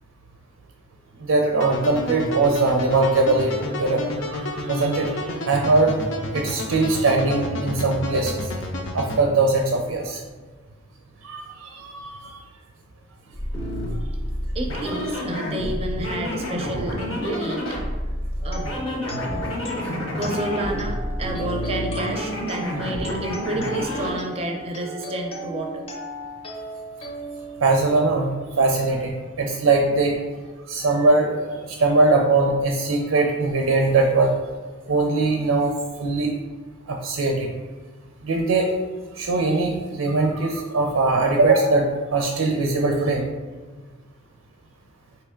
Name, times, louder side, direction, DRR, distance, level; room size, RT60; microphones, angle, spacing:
voice 1, 1.2-6.0 6.3-8.5 8.9-10.2 11.2-12.4 27.6-30.2 30.7-34.3 34.9-35.7 36.0-36.3 36.9-37.5 38.2-38.7 39.2-43.2, right 3 dB, 85° right, 1 dB, 0.5 m, -21 dB
sound 1, 1.6-9.2, left 1 dB, 65° left, 0.6 m, -30 dB
sound 2, 13.3-24.2, equal, 85° left, 1.2 m, -29 dB
voice 2, 14.5-17.7 18.4-18.7 20.2-25.9, right 1 dB, 30° right, 3 dB, 0.5 m, -30 dB
sound 3, 18.4-28.3, right 1 dB, 25° left, 0.6 m, -36 dB
4.4 x 2.9 x 3.6 m, 1.3 s
head